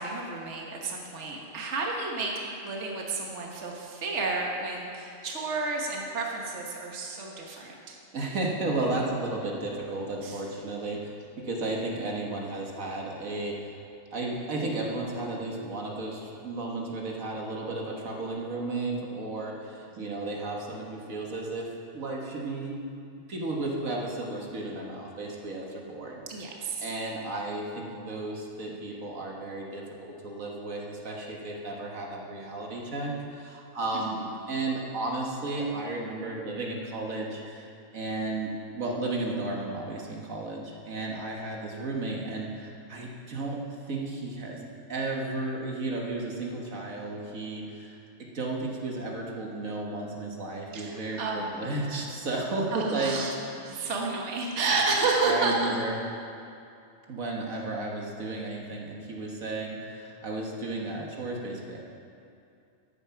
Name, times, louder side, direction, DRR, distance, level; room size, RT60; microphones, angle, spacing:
voice 1, 0.0-8.0 10.2-10.4 19.9-20.1 26.3-26.8 33.9-34.1 50.7-51.9 52.7-53.3 53.6-55.8, right 3 dB, 55° right, -1 dB, 1.6 m, -31 dB
voice 2, 8.1-11.1 11.4-13.7 14.1-22.8 23.3-26.2 26.8-37.7 37.9-43.6 43.9-44.6 44.9-53.2 55.2-55.9 57.1-61.8, right 2 dB, 70° right, -1 dB, 1.8 m, -33 dB
13.0 x 9.2 x 5.8 m, 2.5 s
omnidirectional pair, 1.5 m